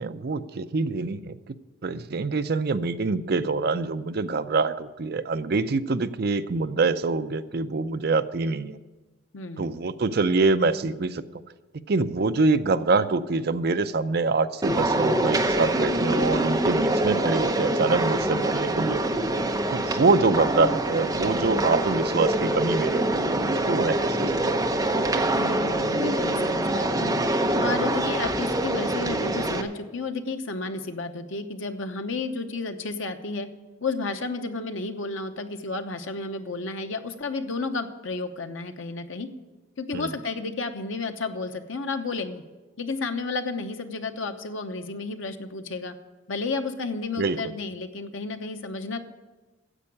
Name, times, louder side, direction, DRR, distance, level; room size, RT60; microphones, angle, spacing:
voice 1, 0.0-1.5 1.8-8.8 9.6-11.2 11.9-19.4 19.7-24.6 39.9-40.1 47.2-47.5, right 3 dB, 55° right, 11 dB, 0.5 m, -25 dB
voice 2, 9.3-9.7 25.4-27.2 27.6-33.5 33.8-39.3 39.8-42.4 42.8-46.0 46.3-49.0, left 3 dB, 85° left, 7 dB, 0.9 m, -32 dB
sound 1, 14.6-29.6, right 1 dB, 20° right, 0.8 m, -25 dB
10.0 x 7.7 x 8.5 m, 1.2 s
head